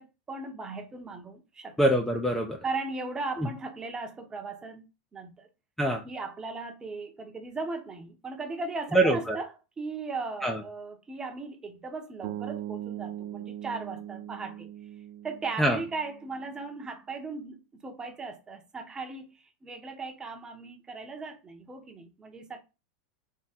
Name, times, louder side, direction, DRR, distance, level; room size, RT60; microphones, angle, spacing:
voice 1, 0.0-1.8 2.6-4.8 5.1-5.5 6.0-9.5 9.8-14.7 15.2-22.6, right 3 dB, 15° right, 0.9 m, -37 dB
voice 2, 1.8-2.6 3.4-3.5 5.8-6.0 8.9-9.4 10.4-10.6 15.6-15.8, right 1 dB, 5° left, 0.6 m, -24 dB
sound 1, 12.2-16.4, right 12 dB, 60° right, 0.5 m, -40 dB
3.7 x 3.0 x 4.3 m
supercardioid pair, 135°, 5 cm